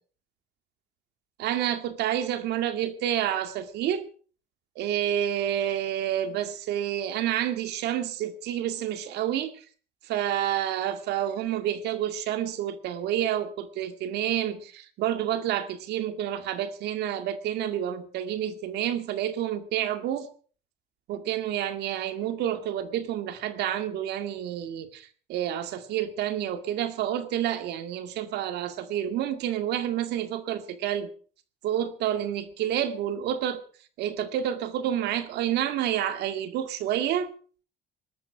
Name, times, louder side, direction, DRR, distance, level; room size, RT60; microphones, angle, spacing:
voice 1, 1.4-4.0 4.8-9.6 10.0-20.3 21.1-31.1 31.6-33.6 34.0-37.3, right 11 dB, 80° right, 10 dB, 2.1 m, -29 dB
19.5 x 13.0 x 5.0 m, 0.42 s
cardioid pair, 110°, 17 cm